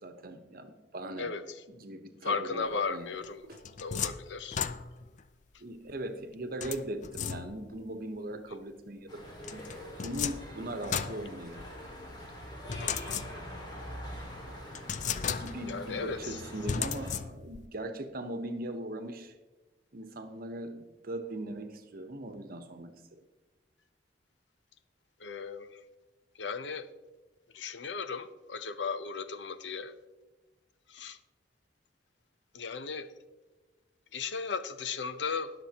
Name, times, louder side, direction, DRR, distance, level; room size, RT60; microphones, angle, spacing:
voice 1, 0.0-1.3 1.7-3.1 3.5-3.6 5.6-9.7 10.0-11.6 13.6-13.7 14.4-14.9 15.4-19.3 19.9-23.2, right 1 dB, 55° right, 7 dB, 1.0 m, -40 dB
voice 2, 1.2-1.6 2.2-3.4 3.8-4.6 12.8-13.2 15.7-16.4 25.2-25.8 26.3-26.9 27.5-29.9 30.9-31.2 32.5-33.1 34.1-35.5, left 5 dB, 85° left, 11 dB, 0.7 m, -36 dB
sound 1, 3.2-5.2 6.6-7.8 9.4-11.9 12.7-13.7 14.1-14.2 14.7-15.8 16.7-17.7, left 7 dB, 45° left, 0.4 m, -36 dB
sound 2, 9.1-17.1, equal, 25° left, 2.2 m, -44 dB
20.5 x 7.0 x 2.9 m, 1.2 s
head